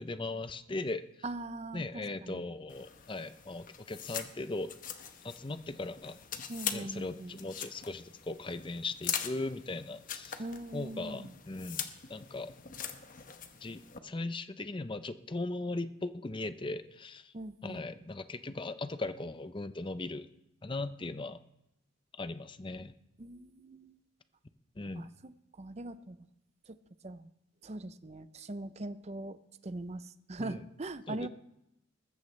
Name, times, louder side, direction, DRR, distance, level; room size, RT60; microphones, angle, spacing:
voice 1, 0.0-1.0 1.7-4.7 5.2-6.2 6.7-10.4 10.7-12.5 13.6-17.3 17.6-20.3 20.6-21.4 22.1-22.9 24.8-25.1 30.4-30.6 31.1-31.3, left 2 dB, 25° left, 12 dB, 0.6 m, -38 dB
voice 2, 1.2-2.5 6.5-7.4 10.4-11.3 17.3-17.8 23.2-24.0 24.9-26.2 26.7-26.8 27.0-27.3 27.6-29.4 29.6-31.3, right 2 dB, 35° right, 13 dB, 0.6 m, -41 dB
sound 1, 2.7-14.0, left 9 dB, 45° left, 0.9 m, -42 dB
20.5 x 14.5 x 3.2 m, 0.86 s
head